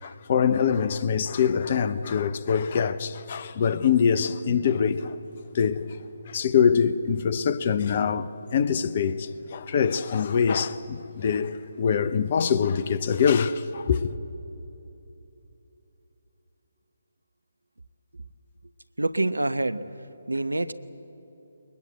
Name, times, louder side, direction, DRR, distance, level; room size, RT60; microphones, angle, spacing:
voice 1, 0.0-5.2 5.5-6.0 6.3-14.0, left 7 dB, 40° left, 0.8 m, -24 dB
voice 2, 19.0-20.7, right 2 dB, 80° right, 0.8 m, -27 dB
22.0 x 20.5 x 7.9 m
figure-of-eight pair, 145°, 0 cm